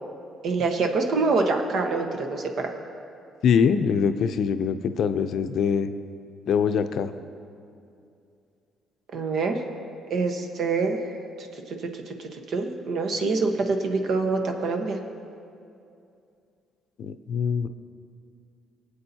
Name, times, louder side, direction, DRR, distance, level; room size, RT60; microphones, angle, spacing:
voice 1, 0.4-2.7 9.1-9.6 10.1-15.0, right 3 dB, 60° right, 4 dB, 1.2 m, -26 dB
voice 2, 3.4-5.9 6.5-7.1 17.0-17.7, left 6 dB, 65° left, 9 dB, 0.5 m, -23 dB
22.5 x 8.4 x 2.8 m, 2.5 s
cardioid pair, 85°, 0 cm